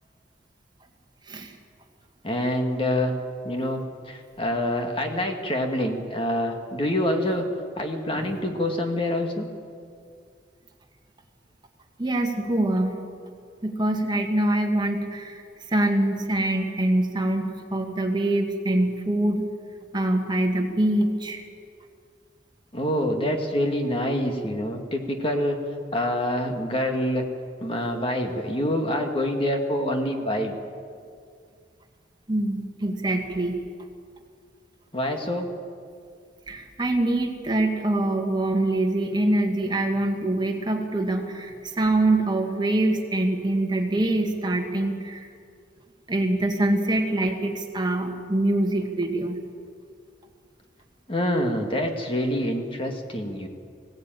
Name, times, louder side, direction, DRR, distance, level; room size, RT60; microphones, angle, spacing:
voice 1, 2.2-3.1 3.4-7.4 7.8-9.5 22.7-25.6 25.9-27.2 27.6-30.6 34.9-35.5 51.1-53.5, left 1 dB, 30° left, 3 dB, 1.8 m, -26 dB
voice 2, 8.1-8.5 12.0-13.0 13.6-19.5 19.9-21.4 32.3-33.7 36.5-45.3 46.1-49.4, right 1 dB, 25° right, 3 dB, 1.8 m, -24 dB
20.5 x 16.5 x 9.1 m, 2.2 s
head